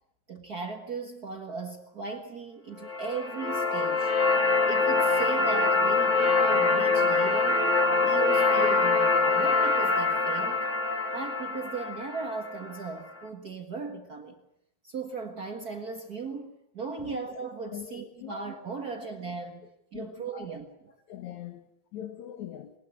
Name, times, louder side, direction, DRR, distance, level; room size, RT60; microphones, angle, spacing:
voice 1, 0.3-4.1 4.6-7.7 8.0-10.7 11.1-14.4 14.8-19.6 19.9-21.0, right 4 dB, 65° right, 4 dB, 0.9 m, -37 dB
sound 1, 2.8-12.9, left 3 dB, 45° left, 0.9 m, -24 dB
voice 2, 17.7-18.3 19.9-20.5 21.1-21.6 21.9-22.7, left 11 dB, 65° left, 7 dB, 2.1 m, -41 dB
21.5 x 20.0 x 8.3 m, 0.78 s
omnidirectional pair, 4.4 m